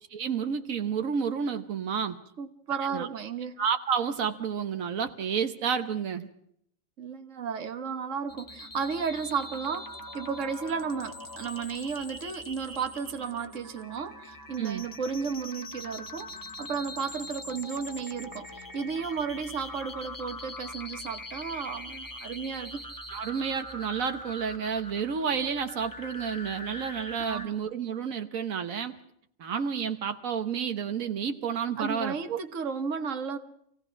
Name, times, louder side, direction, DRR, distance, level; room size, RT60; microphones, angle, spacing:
voice 1, 0.1-2.2 2.9-3.1 3.6-6.3 14.6-14.9 23.1-29.0 29.4-32.4, right 7 dB, 85° right, 1.5 m, -30 dB
voice 2, 2.4-3.6 7.0-9.9 10.1-22.8 27.2-27.5 31.8-33.4, right 6 dB, 70° right, 1.6 m, -33 dB
sound 1, 8.3-27.5, left 1 dB, 15° left, 1.5 m, -42 dB
27.0 x 17.0 x 5.9 m
omnidirectional pair, 1.4 m